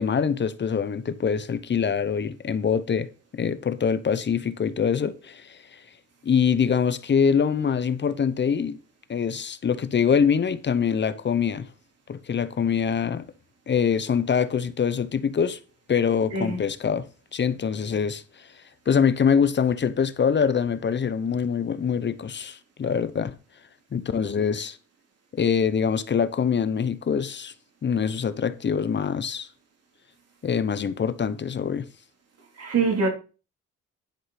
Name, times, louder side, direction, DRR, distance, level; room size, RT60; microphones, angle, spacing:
voice 1, 0.0-3.1 3.3-5.6 6.2-8.8 9.1-11.7 12.1-13.3 13.7-15.6 15.9-17.1 17.3-18.5 18.9-23.3 23.9-24.8 25.3-27.5 27.8-29.5 30.4-31.9, left 7 dB, 35° left, 0.8 m, -24 dB
voice 2, 16.3-16.6 32.6-33.1, right 4 dB, 55° right, 3.4 m, -24 dB
10.5 x 4.8 x 5.8 m
cardioid pair, 90°, 30 cm